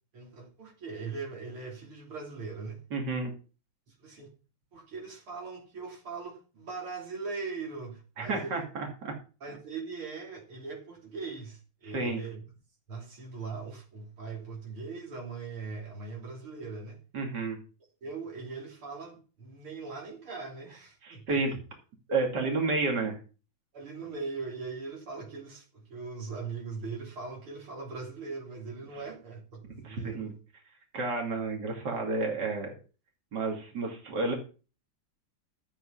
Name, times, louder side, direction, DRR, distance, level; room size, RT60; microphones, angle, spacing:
voice 1, 0.1-2.8 4.0-4.3 4.7-8.7 9.4-12.4 12.9-17.0 18.0-21.6 23.7-30.4 34.1-34.3, right 4 dB, 85° right, 4.0 m, -40 dB
voice 2, 2.9-3.3 8.2-9.1 11.8-12.2 17.1-17.6 21.0-21.6 22.1-23.2 29.8-30.3 30.9-32.7 33.3-34.3, right 3 dB, 55° right, 3.3 m, -31 dB
13.0 x 7.8 x 5.7 m
omnidirectional pair, 2.3 m